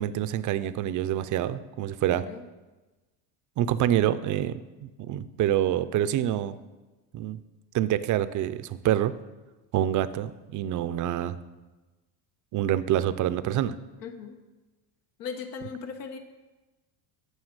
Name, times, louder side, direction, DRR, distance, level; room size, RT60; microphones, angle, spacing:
voice 1, 0.0-2.2 3.6-6.6 7.1-7.4 7.7-9.1 9.7-11.4 12.5-13.7, right 11 dB, 40° right, 13 dB, 0.5 m, -26 dB
voice 2, 2.1-2.5 14.0-14.4 15.2-16.2, left 6 dB, 85° left, 5 dB, 1.2 m, -38 dB
9.6 x 6.9 x 6.6 m, 1.2 s
supercardioid pair, 120°, 48 cm